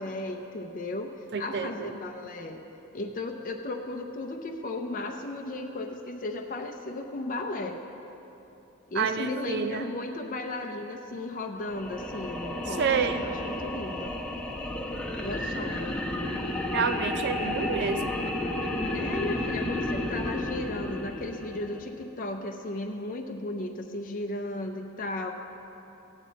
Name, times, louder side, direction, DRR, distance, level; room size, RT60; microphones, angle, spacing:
voice 1, 0.0-2.6 2.9-7.8 8.9-14.1 15.2-16.0 18.9-25.3, left 2 dB, 40° left, 3 dB, 0.6 m, -35 dB
voice 2, 1.3-1.9 8.9-9.9 12.8-13.3 16.7-18.1, right 6 dB, 50° right, 9 dB, 0.5 m, -28 dB
sound 1, 11.6-21.9, left 1 dB, 5° left, 0.9 m, -32 dB
16.0 x 9.2 x 4.1 m, 3.0 s
head